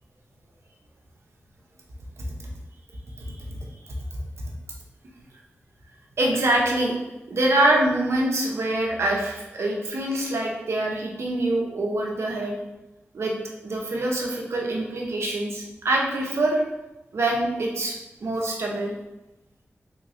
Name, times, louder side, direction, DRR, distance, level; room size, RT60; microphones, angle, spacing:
voice 1, 6.2-6.9 7.3-12.6 13.1-13.3 13.6-16.6 17.1-17.9 18.2-18.9, right 1 dB, 75° right, -1 dB, 0.7 m, -24 dB
3.5 x 3.0 x 2.5 m, 1.0 s
cardioid pair, 55°, 5 cm